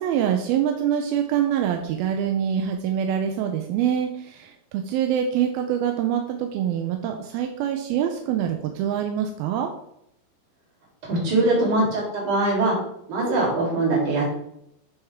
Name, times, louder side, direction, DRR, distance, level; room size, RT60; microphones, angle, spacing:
voice 1, 0.0-9.7, right 9 dB, 80° right, 4 dB, 2.4 m, -25 dB
voice 2, 11.0-12.8 13.1-14.4, right 2 dB, 50° right, -3 dB, 4.5 m, -22 dB
11.5 x 6.6 x 3.6 m, 0.76 s
omnidirectional pair, 4.7 m